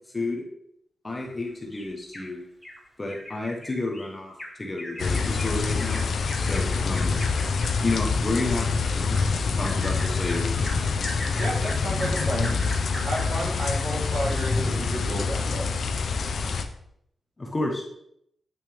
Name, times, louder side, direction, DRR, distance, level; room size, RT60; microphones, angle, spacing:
voice 1, 0.1-0.4 1.0-2.4 3.0-4.3 4.6-6.0 6.4-7.2 7.8-8.7 8.9-10.5 17.4-17.8, left 2 dB, 20° left, 0 dB, 1.2 m, -30 dB
Bird vocalization bird call bird song, 1.2-2.3 2.6-2.8 3.1-13.4 13.9-14.0 14.4-14.5, left 1 dB, 5° left, 2.0 m, -40 dB
sound 1, 5.0-16.6, left 4 dB, 60° left, 0.7 m, -26 dB
voice 2, 11.4-12.6 13.0-15.7, right 1 dB, 50° right, -4 dB, 3.1 m, -31 dB
9.0 x 6.3 x 3.6 m, 0.73 s
wide cardioid pair, 165°, 0 cm